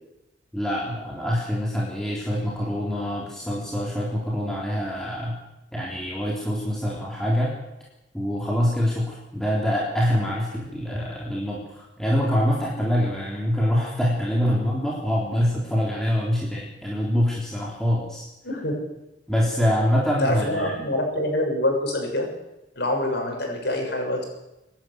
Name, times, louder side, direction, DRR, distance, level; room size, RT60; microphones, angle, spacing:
voice 1, 0.5-5.4 5.7-7.5 8.1-18.3 19.3-20.8, equal, 5° left, -4 dB, 3.6 m, -25 dB
voice 2, 18.4-18.7 20.2-22.3 22.7-24.2, left 1 dB, 65° left, 2 dB, 6.7 m, -25 dB
24.5 x 11.5 x 9.5 m, 0.93 s
head